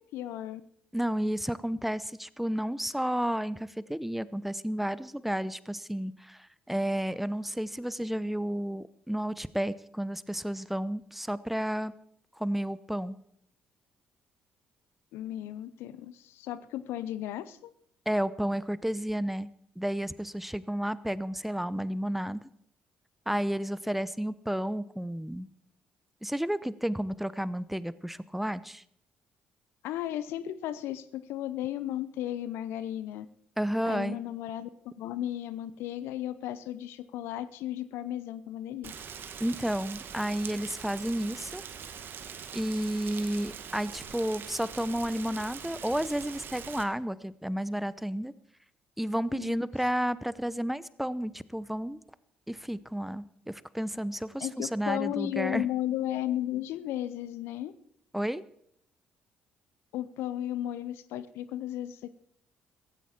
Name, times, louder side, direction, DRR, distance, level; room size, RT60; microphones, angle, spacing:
voice 1, 0.1-0.6 15.1-17.7 29.8-33.3 33.8-38.9 49.3-49.6 54.4-57.7 59.9-62.1, left 12 dB, 70° left, 16 dB, 0.7 m, -35 dB
voice 2, 0.9-11.9 12.4-13.2 18.1-19.5 19.8-22.4 23.3-25.5 26.2-28.8 33.6-34.2 39.4-41.6 42.5-48.3 49.0-52.0 52.5-55.7 58.1-58.4, equal, 5° right, 17 dB, 0.8 m, -32 dB
Rain, 38.8-46.8, right 7 dB, 55° right, 1.7 m, -43 dB
16.0 x 15.5 x 4.4 m, 0.71 s
hypercardioid pair, 45°, 4 cm